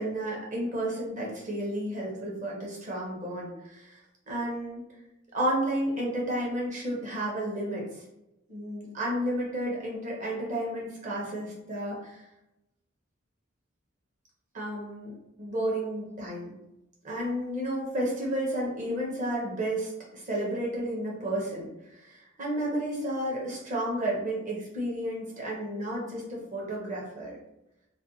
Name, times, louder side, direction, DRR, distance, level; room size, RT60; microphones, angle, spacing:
voice 1, 0.0-4.0 4.3-4.8 5.3-8.0 8.5-12.2 14.5-15.1 15.4-16.5 17.0-27.4, right 1 dB, 40° right, -3 dB, 0.7 m, -32 dB
2.4 x 2.1 x 2.6 m, 0.89 s
head